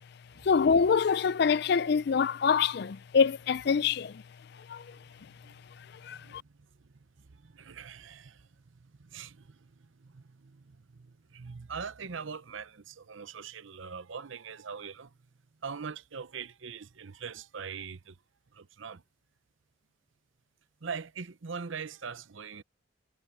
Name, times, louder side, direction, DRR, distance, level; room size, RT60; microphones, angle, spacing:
voice 1, 0.4-4.1 4.7-4.8 6.0-6.4, left 6 dB, 50° left, 0.4 m, -25 dB
voice 2, 6.1-15.2 15.6-18.2 18.5-19.0 20.8-22.6, right 6 dB, 70° right, 0.8 m, -42 dB
head